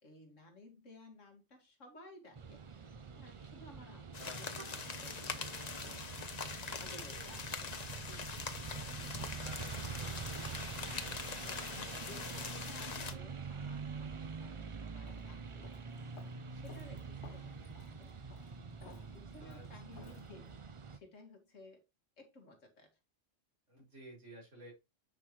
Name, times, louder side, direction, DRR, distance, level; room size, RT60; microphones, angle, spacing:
voice 1, 0.0-6.1 6.8-10.6 10.9-11.7 12.0-15.7 16.5-18.2 18.8-20.5 20.9-21.8 22.2-23.0, left 2 dB, 80° left, 2.5 m, -57 dB
sound 1, 2.4-21.0, right 5 dB, 40° right, 0.4 m, -46 dB
sound 2, 4.1-13.1, left 5 dB, 35° left, 0.9 m, -43 dB
voice 2, 9.3-10.1 11.3-11.4 11.7-12.2 19.4-19.7 19.9-20.2 23.7-24.7, right 1 dB, 70° right, 5.2 m, -53 dB
Walk footsteps, 15.0-20.6, left 8 dB, 65° left, 1.1 m, -60 dB
9.1 x 5.6 x 3.1 m
omnidirectional pair, 1.3 m